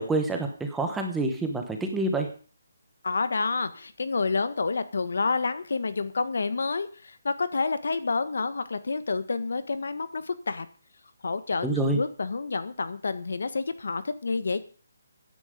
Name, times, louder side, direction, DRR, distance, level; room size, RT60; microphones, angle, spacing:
voice 1, 0.0-2.3 11.6-12.0, right 2 dB, 5° right, 4 dB, 0.9 m, -27 dB
voice 2, 3.0-10.7 11.2-14.6, left 4 dB, 60° left, 12 dB, 1.5 m, -29 dB
15.5 x 10.0 x 5.2 m, 0.39 s
hypercardioid pair, 180°, 0 cm